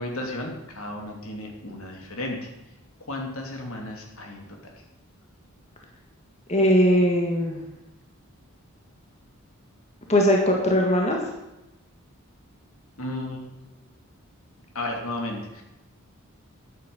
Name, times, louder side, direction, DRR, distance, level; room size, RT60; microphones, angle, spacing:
voice 1, 0.0-2.4 3.1-4.7 13.0-13.4 14.7-15.6, left 1 dB, 70° left, 1 dB, 2.8 m, -33 dB
voice 2, 6.5-7.6 10.1-11.2, equal, 30° left, 0 dB, 1.6 m, -20 dB
10.0 x 9.0 x 7.0 m, 0.97 s
head